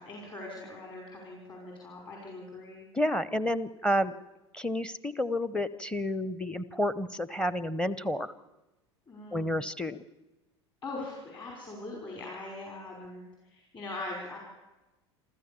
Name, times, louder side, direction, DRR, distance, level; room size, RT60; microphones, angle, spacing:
voice 1, 0.0-2.9 9.1-9.6 10.8-14.4, left 2 dB, 35° left, -1 dB, 5.5 m, -41 dB
voice 2, 2.9-4.2 4.5-8.3 9.3-10.0, left 1 dB, 5° left, 17 dB, 0.8 m, -30 dB
28.0 x 13.5 x 7.1 m, 1.0 s
figure-of-eight pair, 75°, 15 cm